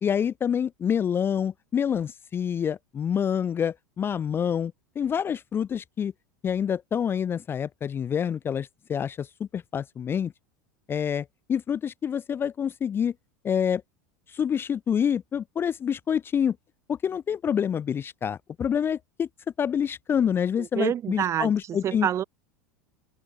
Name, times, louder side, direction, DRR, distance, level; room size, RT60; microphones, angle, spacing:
voice 1, 0.0-6.1 6.4-10.3 10.9-13.1 13.4-13.8 14.3-16.6 16.9-19.3 19.6-22.1, left 8 dB, 25° left, 0.4 m, -27 dB
voice 2, 20.6-22.2, right 10 dB, 30° right, 0.8 m, -28 dB
open air
figure-of-eight pair, 80°, 9 cm